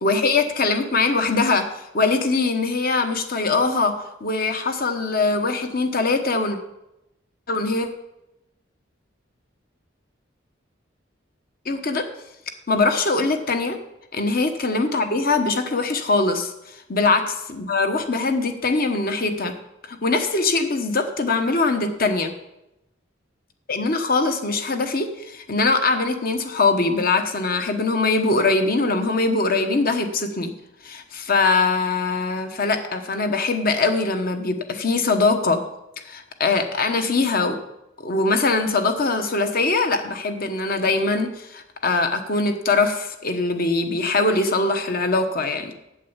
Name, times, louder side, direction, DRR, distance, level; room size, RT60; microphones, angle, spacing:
voice 1, 0.0-6.6 7.5-7.9 11.6-12.1 12.7-13.8 14.1-17.2 17.5-19.5 19.9-22.3 23.7-30.5 30.8-35.6 36.0-37.6 38.0-45.7, left 3 dB, 50° left, 7 dB, 1.1 m, -22 dB
8.5 x 8.1 x 7.2 m, 0.90 s
head